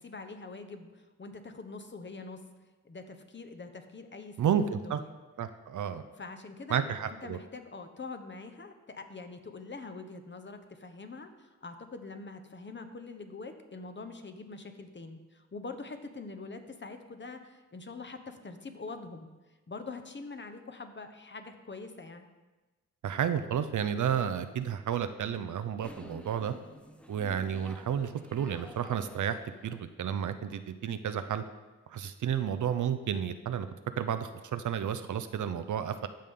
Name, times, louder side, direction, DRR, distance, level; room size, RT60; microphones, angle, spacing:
voice 1, 0.0-2.4 2.8-4.4 4.8-5.1 6.2-6.8 7.2-19.3 19.7-22.2, left 3 dB, 35° left, 7 dB, 1.0 m, -44 dB
voice 2, 4.4-5.0 5.4-6.0 6.7-7.4 23.0-26.5 27.1-31.4 31.9-33.7 34.0-36.1, right 8 dB, 70° right, 10 dB, 0.6 m, -31 dB
sound 1, 25.8-29.9, equal, 5° left, 0.8 m, -50 dB
14.0 x 5.3 x 3.7 m, 1.2 s
cardioid pair, 60°, 31 cm